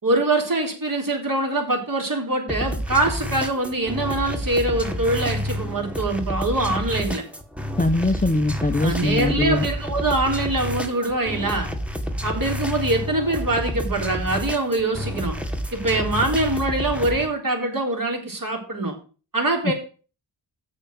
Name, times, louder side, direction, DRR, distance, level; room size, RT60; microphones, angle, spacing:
voice 1, 0.0-7.2 8.8-11.7 12.2-15.3 15.7-19.0 19.3-19.7, right 2 dB, 40° right, 1 dB, 3.8 m, -24 dB
sound 1, 2.5-17.3, equal, 5° right, 1.7 m, -29 dB
voice 2, 7.8-9.7 19.6-19.7, left 2 dB, 15° left, 8 dB, 0.9 m, -22 dB
6.8 x 6.4 x 7.6 m, 0.36 s
cardioid pair, 60°, 48 cm